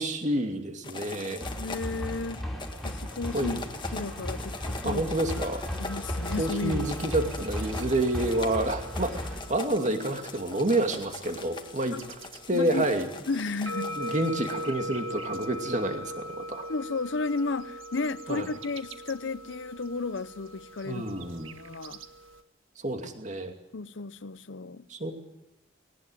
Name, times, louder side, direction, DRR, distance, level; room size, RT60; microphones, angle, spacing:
voice 1, 0.0-1.5 3.3-3.6 4.8-5.7 6.4-12.2 12.5-13.1 13.9-16.7 18.3-18.5 20.8-21.5 22.8-23.5 24.9-25.1, right 1 dB, 40° right, 2.5 m, -29 dB
sound 1, 0.8-14.7, left 3 dB, 25° left, 1.7 m, -42 dB
sound 2, 1.4-9.4, equal, ahead, 3.8 m, -36 dB
voice 2, 1.5-2.4 2.8-3.6 3.9-5.1 5.7-6.8 11.9-12.1 12.5-12.9 13.3-13.9 16.7-21.0 21.6-22.0 23.7-24.8, left 3 dB, 65° left, 0.7 m, -33 dB
sound 3, 5.8-22.4, equal, 85° right, 1.6 m, -42 dB
21.0 x 18.5 x 9.2 m
head